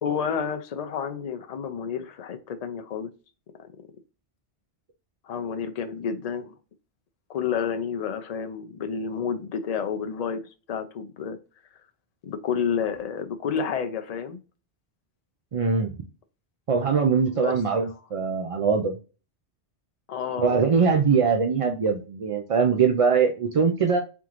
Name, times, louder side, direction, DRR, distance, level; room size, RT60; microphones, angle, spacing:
voice 1, 0.0-3.1 3.6-3.7 5.2-6.5 7.3-11.4 12.2-14.4 17.3-17.6 20.1-20.6, left 7 dB, 45° left, 0.5 m, -30 dB
voice 2, 15.5-15.9 16.7-18.9 20.4-24.0, right 5 dB, 50° right, 0.4 m, -22 dB
3.7 x 3.5 x 3.0 m
omnidirectional pair, 1.1 m